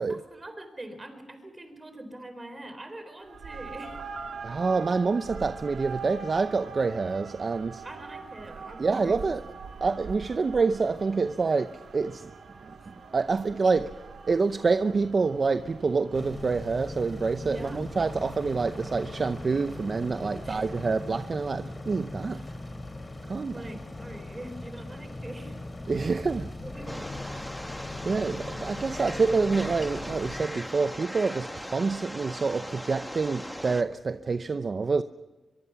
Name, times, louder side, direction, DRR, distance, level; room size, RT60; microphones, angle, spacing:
voice 1, 0.3-4.0 7.8-9.4 12.8-12.9 17.4-17.9 20.2-20.7 22.3-22.5 23.5-25.8 26.6-27.2, right 1 dB, 25° right, 4.2 m, -43 dB
sound 1, 3.2-21.1, right 5 dB, 85° right, 2.3 m, -44 dB
voice 2, 4.4-7.8 8.8-9.4 9.8-12.3 12.6-14.0 14.3-22.4 23.2-23.7 25.9-26.5 28.0-35.0, right 4 dB, 50° right, 0.7 m, -27 dB
sound 2, 16.1-30.4, left 2 dB, 30° left, 4.1 m, -40 dB
sound 3, 26.9-33.8, equal, 5° left, 1.3 m, -39 dB
24.0 x 23.0 x 5.9 m
cardioid pair, 80°, 0 cm